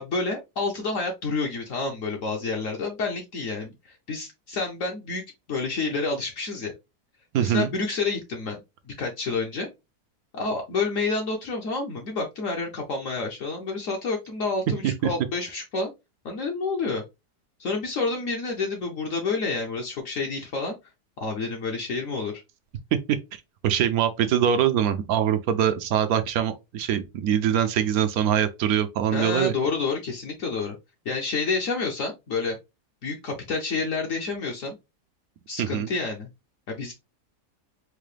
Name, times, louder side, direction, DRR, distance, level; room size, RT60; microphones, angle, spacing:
voice 1, 0.0-5.2 5.5-6.7 7.4-8.6 8.9-9.7 10.3-15.9 16.2-17.0 17.6-20.7 21.2-22.4 29.1-30.8 31.0-32.6 33.0-34.7 35.5-36.3 36.7-36.9, left 3 dB, 60° left, 1.1 m, -29 dB
voice 2, 7.3-7.7 14.8-15.1 22.9-29.5 35.6-35.9, right 9 dB, 70° right, 1.0 m, -23 dB
4.7 x 2.2 x 3.2 m
omnidirectional pair, 1.7 m